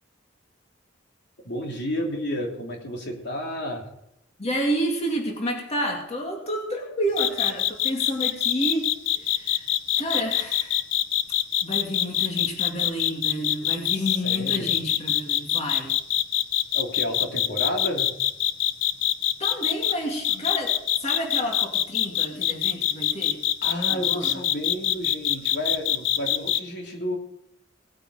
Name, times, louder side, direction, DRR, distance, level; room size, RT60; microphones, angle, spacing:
voice 1, 1.4-3.9 13.9-14.7 16.7-18.1 23.6-27.2, equal, 60° left, 1 dB, 3.1 m, -31 dB
voice 2, 4.4-9.7 10.0-10.8 11.6-16.0 19.4-23.4 23.9-24.4, equal, 35° left, 0 dB, 2.4 m, -30 dB
sound 1, 7.2-19.9 20.2-26.6, left 12 dB, 80° left, 0.6 m, -23 dB
19.0 x 9.0 x 5.1 m, 0.81 s
head